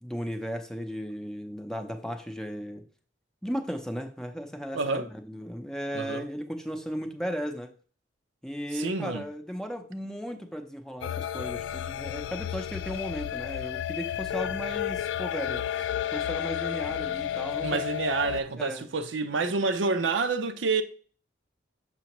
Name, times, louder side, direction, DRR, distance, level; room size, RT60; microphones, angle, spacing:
voice 1, 0.0-2.8 3.4-7.7 8.4-15.8 16.1-17.8 18.6-18.9, equal, 5° left, 0.6 m, -36 dB
voice 2, 4.7-5.1 5.9-6.3 8.7-9.2 17.6-20.8, right 4 dB, 75° right, 0.6 m, -28 dB
sound 1, 11.0-18.4, left 10 dB, 65° left, 0.3 m, -32 dB
6.8 x 6.1 x 3.0 m
head